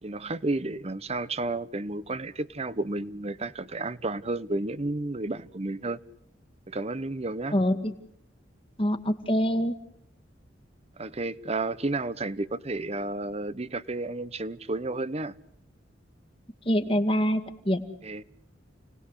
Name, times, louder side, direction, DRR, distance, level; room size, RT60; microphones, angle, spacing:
voice 1, 0.0-6.0 6.7-7.6 11.0-15.3 18.0-18.2, right 2 dB, 35° right, 1.0 m, -32 dB
voice 2, 8.8-9.7 16.7-17.4 17.7-17.8, equal, 30° left, 2.1 m, -24 dB
30.0 x 19.5 x 8.2 m
head